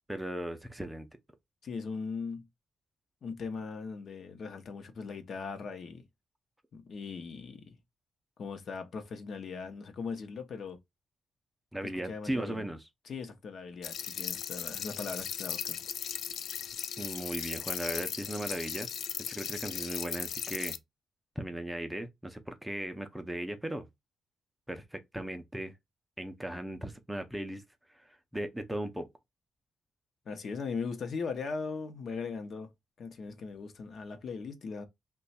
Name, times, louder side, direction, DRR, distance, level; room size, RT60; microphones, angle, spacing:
voice 1, 0.1-1.1 11.7-12.8 17.0-18.9 19.3-20.8 21.4-23.9 24.7-25.7 26.2-27.6 27.9-29.1, right 1 dB, 5° right, 0.5 m, -37 dB
voice 2, 1.6-2.4 3.2-6.0 6.7-7.8 8.4-10.8 11.8-12.6 13.1-15.8 30.3-32.7 33.0-34.8, left 5 dB, 60° left, 0.7 m, -39 dB
sound 1, 13.8-20.8, left 8 dB, 80° left, 0.3 m, -37 dB
2.9 x 2.3 x 4.1 m
cardioid pair, 110°, 0 cm